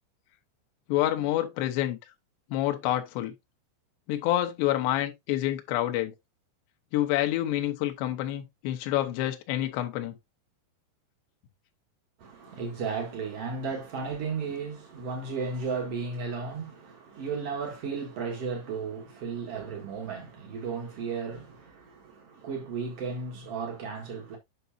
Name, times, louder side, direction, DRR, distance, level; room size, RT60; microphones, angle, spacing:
voice 1, 0.9-2.0 2.5-3.3 4.1-6.1 6.9-10.2, left 13 dB, 80° left, 2.7 m, -28 dB
voice 2, 12.2-24.4, right 5 dB, 70° right, 1.4 m, -34 dB
8.1 x 5.9 x 2.7 m
omnidirectional pair, 5.5 m